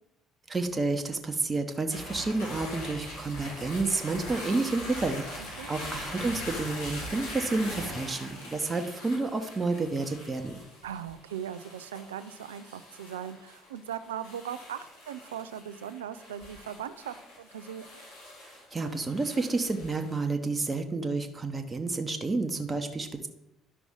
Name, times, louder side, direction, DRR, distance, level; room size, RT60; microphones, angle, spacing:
voice 1, 0.5-10.6 18.4-23.3, right 3 dB, 25° right, 5 dB, 1.0 m, -30 dB
sound 1, 1.9-20.2, left 1 dB, 80° left, 2.9 m, -42 dB
voice 2, 10.8-17.9, right 9 dB, 80° right, 13 dB, 0.4 m, -39 dB
11.0 x 6.0 x 3.8 m, 0.91 s
figure-of-eight pair, 50°, 0 cm